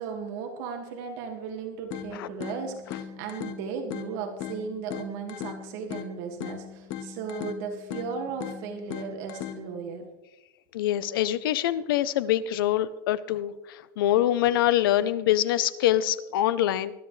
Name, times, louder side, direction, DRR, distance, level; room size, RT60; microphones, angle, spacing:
voice 1, 0.0-10.1, right 6 dB, 55° right, 3 dB, 2.1 m, -36 dB
sound 1, 1.9-9.9, left 9 dB, 45° left, 1.3 m, -39 dB
voice 2, 10.7-16.9, left 12 dB, 80° left, 16 dB, 0.8 m, -25 dB
20.5 x 12.5 x 3.3 m, 1.0 s
supercardioid pair, 160°, 11 cm